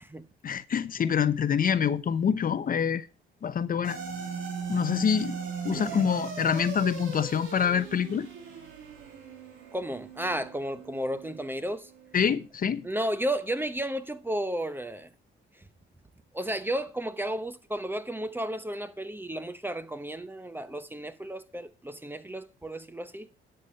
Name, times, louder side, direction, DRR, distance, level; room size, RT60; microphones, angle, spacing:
voice 1, 0.4-3.1 3.4-4.0 4.7-5.4 5.6-8.3 12.1-12.9, left 7 dB, 45° left, 0.8 m, -26 dB
sound 1, 3.8-12.3, right 6 dB, 85° right, 2.8 m, -38 dB
voice 2, 5.7-6.1 9.7-11.9 12.8-15.1 16.3-23.3, right 1 dB, 10° right, 0.9 m, -33 dB
11.5 x 6.8 x 5.5 m
cardioid pair, 90°, 20 cm